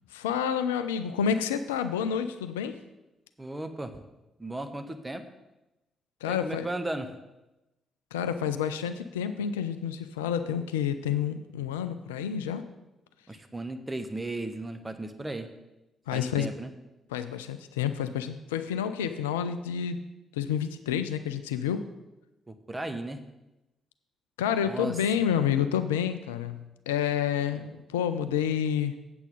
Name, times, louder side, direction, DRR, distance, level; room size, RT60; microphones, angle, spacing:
voice 1, 0.1-2.8 6.2-6.7 8.1-12.7 16.1-16.5 17.1-20.0 20.3-21.8 24.4-29.0, left 8 dB, 75° left, 11 dB, 0.4 m, -29 dB
voice 2, 3.4-4.0 4.4-5.2 6.2-7.1 13.3-15.5 16.1-16.7 22.5-23.2 24.6-25.0, right 2 dB, 15° right, 7 dB, 1.0 m, -35 dB
8.2 x 7.7 x 5.3 m, 1.0 s
figure-of-eight pair, 40°, 0 cm